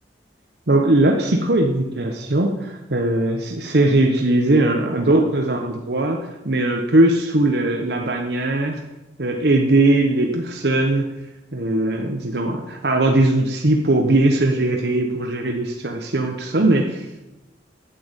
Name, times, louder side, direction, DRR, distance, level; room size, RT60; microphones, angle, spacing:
voice 1, 0.7-8.8 9.2-11.1 11.5-17.2, right 2 dB, 65° right, 2 dB, 1.1 m, -19 dB
9.0 x 8.6 x 8.1 m, 1.0 s
head